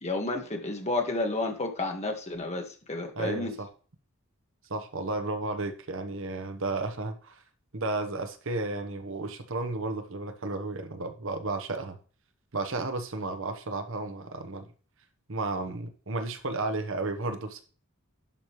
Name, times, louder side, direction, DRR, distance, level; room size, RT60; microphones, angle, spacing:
voice 1, 0.0-3.5, left 2 dB, 30° left, 3 dB, 1.6 m, -31 dB
voice 2, 3.2-3.7 4.7-7.4 7.7-12.0 12.5-14.7 15.3-17.6, right 2 dB, 60° right, 7 dB, 1.1 m, -33 dB
11.0 x 5.4 x 3.1 m, 0.38 s
head